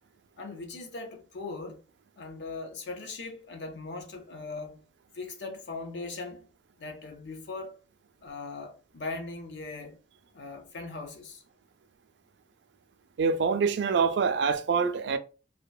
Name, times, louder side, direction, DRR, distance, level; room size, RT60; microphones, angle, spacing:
voice 1, 0.4-1.8 2.2-4.8 5.1-6.5 6.8-7.8 8.2-10.0 10.3-11.4, left 3 dB, 70° left, 0.6 m, -39 dB
voice 2, 13.2-15.2, right 5 dB, 70° right, 0.3 m, -25 dB
2.9 x 2.1 x 2.2 m
head